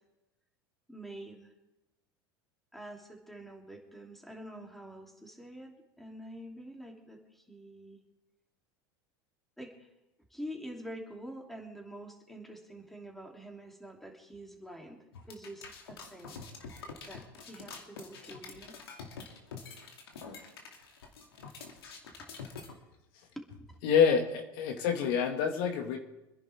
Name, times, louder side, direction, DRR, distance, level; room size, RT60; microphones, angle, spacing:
voice 1, 0.9-1.5 2.7-8.0 9.6-9.9 10.3-16.7 17.1-18.8 23.3-23.5, right 1 dB, ahead, 1 dB, 3.1 m, -46 dB
sound 1, 15.1-22.7, left 5 dB, 85° left, 2.5 m, -46 dB
voice 2, 23.8-26.0, left 7 dB, 65° left, 4 dB, 2.1 m, -27 dB
26.0 x 10.5 x 3.6 m, 0.97 s
hypercardioid pair, 85°, 13 cm